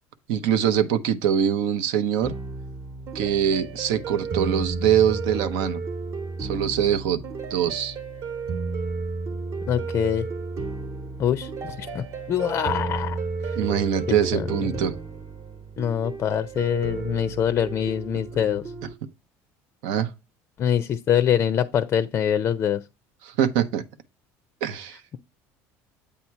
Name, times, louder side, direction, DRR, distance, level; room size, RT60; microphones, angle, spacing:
voice 1, 0.3-2.3 3.1-5.8 6.4-7.2 7.5-7.9 13.5-14.9 19.8-20.1 23.2-23.8 24.6-25.0, right 9 dB, 80° right, 0.8 m, -23 dB
sound 1, 2.2-18.9, right 4 dB, 45° right, 1.0 m, -32 dB
voice 2, 9.7-10.3 11.2-13.2 14.1-14.5 15.8-18.6 20.6-22.8, left 9 dB, 35° left, 0.4 m, -24 dB
8.4 x 2.8 x 4.5 m
cardioid pair, 135°, 7 cm